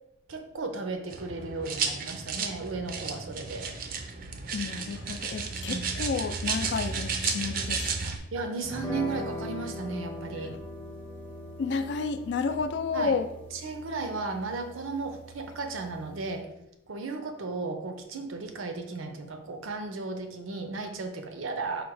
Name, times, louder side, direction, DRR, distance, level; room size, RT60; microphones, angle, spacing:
voice 1, 0.3-3.7 5.7-5.9 8.3-10.5 12.9-13.1 13.6-16.5 16.9-21.8, right 3 dB, 90° right, 6 dB, 0.6 m, -35 dB
sound 1, 1.1-8.2, right 5 dB, 45° right, 0.4 m, -33 dB
voice 2, 4.5-8.2 11.6-13.3, left 5 dB, 60° left, 10 dB, 0.3 m, -31 dB
sound 2, 8.6-16.4, left 1 dB, 5° left, 0.6 m, -41 dB
4.8 x 2.0 x 4.6 m, 0.84 s
head